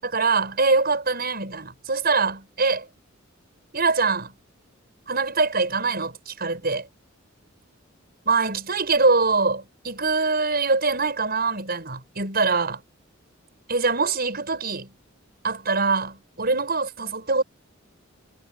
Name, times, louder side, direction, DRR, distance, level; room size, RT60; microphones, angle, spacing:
voice 1, 0.0-2.9 3.7-4.3 5.1-6.9 8.3-12.8 13.7-14.9 15.4-17.4, right 4 dB, 50° right, 7.0 m, -23 dB
head